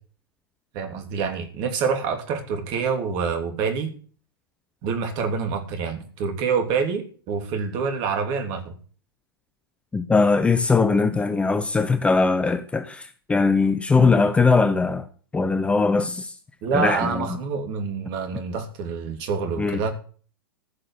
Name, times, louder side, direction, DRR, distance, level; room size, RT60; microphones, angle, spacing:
voice 1, 0.7-3.9 4.8-8.7 16.6-19.9, right 5 dB, 35° right, 3.3 m, -26 dB
voice 2, 9.9-15.1 15.3-16.3 16.7-17.3 19.6-19.8, left 4 dB, 10° left, 0.8 m, -20 dB
14.5 x 6.5 x 8.3 m
figure-of-eight pair, 100°, 12 cm